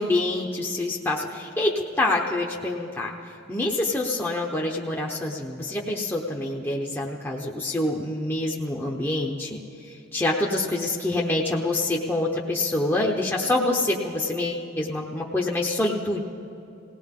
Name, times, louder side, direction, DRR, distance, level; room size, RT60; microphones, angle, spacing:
voice 1, 0.0-3.1 3.5-9.6 10.1-16.2, left 2 dB, 10° left, -2 dB, 0.8 m, -26 dB
19.5 x 17.5 x 3.7 m, 2.7 s
head